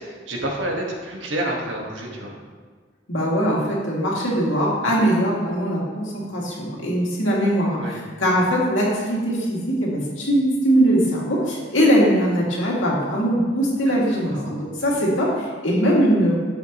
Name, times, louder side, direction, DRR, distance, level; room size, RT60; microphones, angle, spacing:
voice 1, 0.0-2.3 7.8-8.0 13.8-14.6, right 1 dB, 75° right, -1 dB, 1.6 m, -29 dB
voice 2, 3.1-16.3, equal, 85° left, -4 dB, 2.4 m, -21 dB
10.5 x 7.2 x 3.0 m, 1.5 s
head